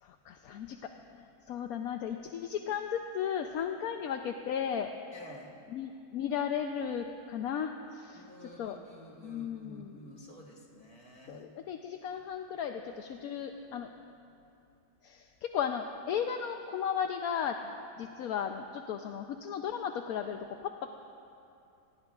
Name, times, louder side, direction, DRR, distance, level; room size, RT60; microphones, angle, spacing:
voice 1, 0.0-4.9 5.7-8.8 9.2-10.0 11.3-14.0 15.0-20.9, left 8 dB, 65° left, 5 dB, 1.0 m, -35 dB
voice 2, 5.1-5.5 8.1-11.5, equal, 35° left, -1 dB, 2.2 m, -51 dB
29.0 x 19.5 x 2.4 m, 2.7 s
omnidirectional pair, 1.9 m